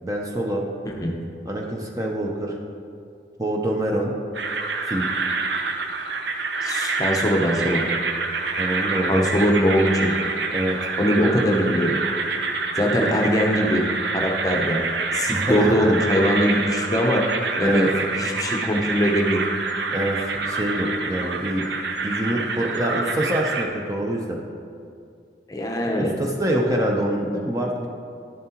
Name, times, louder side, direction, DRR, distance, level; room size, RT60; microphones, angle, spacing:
voice 1, 0.0-0.6 1.5-2.6 3.4-4.1 4.9-5.1 8.6-9.3 10.5-10.8 15.3-15.9 17.6-17.9 19.9-21.6 22.0-24.4 26.0-27.9, right 1 dB, 20° right, -1 dB, 0.6 m, -25 dB
voice 2, 0.8-1.2 6.6-7.9 9.1-10.1 11.0-12.0 12.8-13.9 14.1-14.8 15.1-17.2 17.6-17.9 18.2-19.4 25.5-26.1, equal, 20° left, 0 dB, 0.7 m, -21 dB
sound 1, 4.3-23.7, right 4 dB, 70° right, 0.6 m, -27 dB
10.5 x 7.3 x 2.9 m, 2.3 s
head